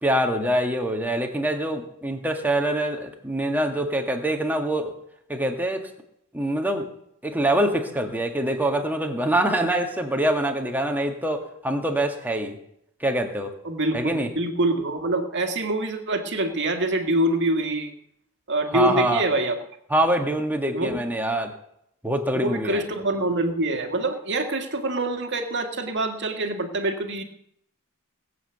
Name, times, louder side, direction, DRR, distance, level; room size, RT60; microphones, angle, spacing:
voice 1, 0.0-4.9 5.3-5.9 6.3-6.9 7.2-12.6 13.0-13.5 13.9-14.3 18.7-19.2 19.9-21.5 22.0-22.8, right 1 dB, 10° right, 3 dB, 1.9 m, -24 dB
voice 2, 13.6-17.9 18.5-19.6 20.7-21.0 22.3-27.2, right 2 dB, 55° right, 5 dB, 1.9 m, -25 dB
19.5 x 7.7 x 8.1 m, 0.74 s
head